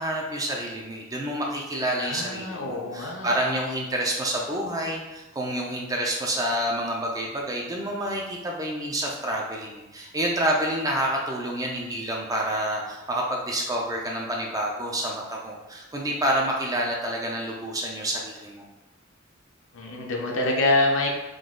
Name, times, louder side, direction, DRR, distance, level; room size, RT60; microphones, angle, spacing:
voice 1, 0.0-18.6, right 1 dB, 15° right, -1 dB, 0.5 m, -28 dB
voice 2, 2.0-3.3 19.7-21.1, left 2 dB, 70° left, 0 dB, 0.7 m, -25 dB
3.8 x 2.7 x 3.8 m, 1.0 s
head